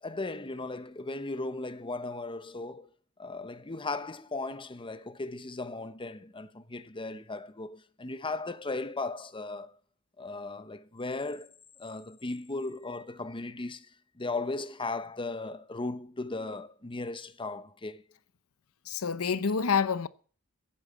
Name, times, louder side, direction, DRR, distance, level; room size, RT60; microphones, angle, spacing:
voice 1, 0.0-2.9 3.2-9.7 10.2-11.5 11.8-13.9 14.2-18.0, left 3 dB, 25° left, 0.9 m, -37 dB
voice 2, 18.9-20.1, left 6 dB, 75° left, 0.8 m, -27 dB
15.5 x 8.7 x 8.4 m
head